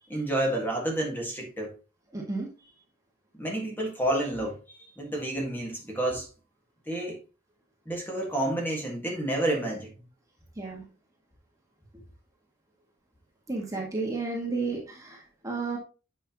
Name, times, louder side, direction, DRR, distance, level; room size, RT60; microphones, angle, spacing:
voice 1, 0.1-1.8 3.4-6.3 6.9-7.2 7.8-10.0, right 1 dB, 10° left, 1.6 m, -30 dB
voice 2, 2.1-2.5 10.6-10.8 13.5-15.8, right 3 dB, 15° right, 1.4 m, -32 dB
8.3 x 5.5 x 2.9 m
head